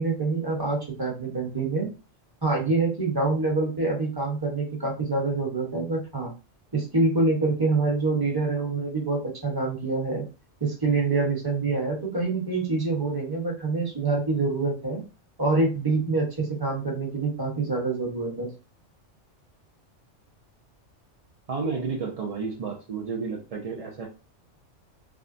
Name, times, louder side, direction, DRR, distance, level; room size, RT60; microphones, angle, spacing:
voice 1, 0.0-1.9 2.4-6.3 6.7-10.2 10.6-15.0 15.4-18.5, right 3 dB, 20° right, -1 dB, 1.0 m, -26 dB
voice 2, 21.5-24.1, right 5 dB, 55° right, 0 dB, 0.4 m, -31 dB
3.5 x 2.1 x 2.5 m, 0.31 s
omnidirectional pair, 1.3 m